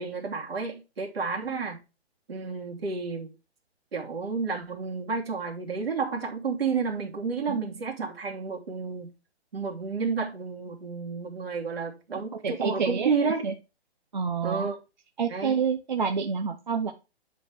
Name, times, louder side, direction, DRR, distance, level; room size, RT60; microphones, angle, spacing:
voice 1, 0.0-1.8 2.3-3.3 3.9-9.1 9.5-13.5 14.4-14.8 15.3-15.6, right 5 dB, 60° right, 2.8 m, -31 dB
voice 2, 12.1-13.1 13.4-13.5 14.1-14.8 15.2-16.9, right 6 dB, 45° right, 0.9 m, -28 dB
10.0 x 4.4 x 3.6 m
hypercardioid pair, 180°, 34 cm